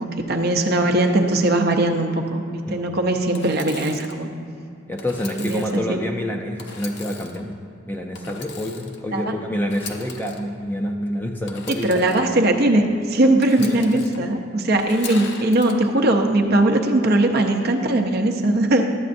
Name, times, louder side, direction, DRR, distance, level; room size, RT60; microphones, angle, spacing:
voice 1, 0.0-4.3 5.4-6.0 9.1-9.2 11.7-18.9, right 1 dB, 50° right, 3 dB, 0.7 m, -20 dB
Engine / Sawing, 3.3-4.2 5.0-5.8 6.6-7.4 8.1-9.0 9.6-10.4 11.5-12.2 13.4-14.2 14.8-15.7, left 5 dB, 55° left, 0.7 m, -38 dB
voice 2, 4.9-7.6 7.9-12.1, equal, 10° left, 2 dB, 0.5 m, -27 dB
12.0 x 8.4 x 2.6 m, 2.6 s
head